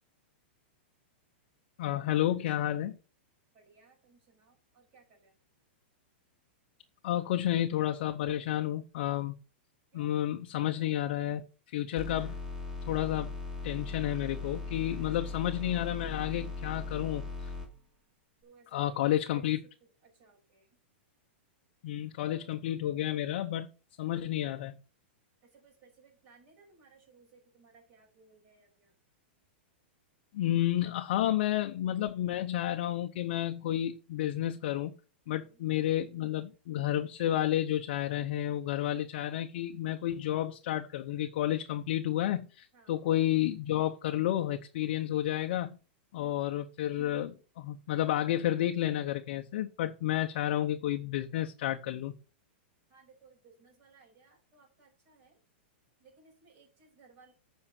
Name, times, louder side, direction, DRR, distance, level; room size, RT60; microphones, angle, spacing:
voice 1, 1.8-3.0 7.0-9.4 9.9-11.4 11.7-12.4 12.9-13.3 13.6-17.5 18.7-19.6 21.8-23.7 24.0-24.7 30.3-34.9 35.3-45.8 46.1-52.1, left 12 dB, 50° left, 0.8 m, -31 dB
voice 2, 3.5-5.3 9.9-10.1 18.4-19.4 20.0-20.7 25.5-28.9 35.3-35.6 42.7-42.9 46.1-46.4 52.9-55.4 56.0-57.3, right 4 dB, 30° right, 6.2 m, -61 dB
sound 1, 12.0-17.7, left 3 dB, 10° right, 2.7 m, -39 dB
8.8 x 5.5 x 6.5 m
supercardioid pair, 160°, 6 cm